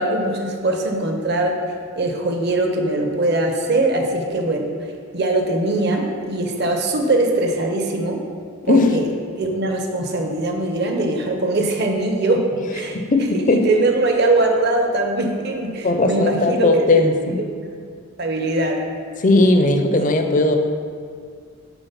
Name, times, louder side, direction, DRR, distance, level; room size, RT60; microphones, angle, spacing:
voice 1, 0.0-1.6 2.0-4.7 5.1-8.2 8.6-9.0 9.4-12.5 12.7-13.0 13.3-16.8 17.6-17.7 18.2-18.8, right 2 dB, 45° right, 3 dB, 0.7 m, -21 dB
voice 2, 12.9-13.6 15.8-17.4 19.2-20.6, left 2 dB, 35° left, 5 dB, 0.5 m, -17 dB
7.0 x 3.9 x 5.7 m, 2.1 s
head